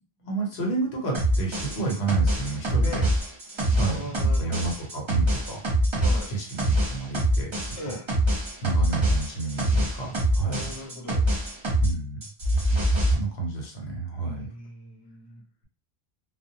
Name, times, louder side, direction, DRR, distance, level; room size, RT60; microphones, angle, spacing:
voice 1, 0.2-3.0 3.7-5.6 6.3-7.9 8.6-10.6 11.8-12.2 13.0-14.5, right 3 dB, 80° left, 0 dB, 1.1 m, -30 dB
sound 1, 1.1-11.9 12.2-13.1, right 1 dB, 35° right, 0.6 m, -24 dB
voice 2, 3.9-4.7 6.0-6.3 7.8-8.1 10.5-11.3 14.2-15.4, left 2 dB, 30° left, -5 dB, 0.8 m, -39 dB
2.2 x 2.2 x 2.7 m, 0.41 s
omnidirectional pair, 1.1 m